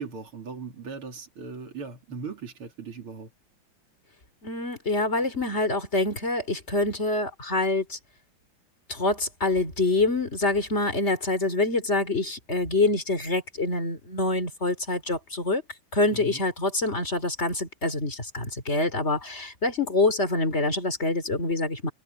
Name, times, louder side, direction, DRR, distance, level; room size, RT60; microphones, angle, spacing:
voice 1, 0.0-3.3 16.1-16.4, right 5 dB, 85° right, 3.9 m, -38 dB
voice 2, 4.4-8.0 8.9-15.6 15.9-21.9, left 2 dB, 30° left, 4.0 m, -26 dB
omnidirectional pair, 2.3 m